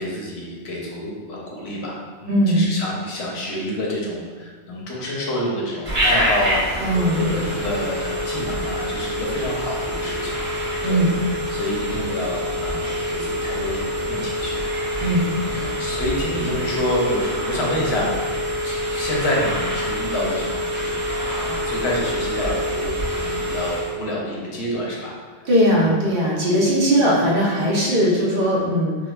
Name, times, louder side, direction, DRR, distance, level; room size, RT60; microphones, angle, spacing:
voice 1, 0.0-6.7 7.2-10.4 10.8-18.1 18.6-25.1 25.7-26.0 26.9-27.1, left 1 dB, 85° left, -3 dB, 1.0 m, -28 dB
voice 2, 2.3-2.7 6.8-7.6 10.8-11.2 15.0-15.7 25.4-29.0, equal, 60° right, -5 dB, 0.9 m, -19 dB
Telephone, 5.9-24.0, equal, 10° right, 1.1 m, -26 dB
4.7 x 2.2 x 2.2 m, 1.4 s
omnidirectional pair, 1.1 m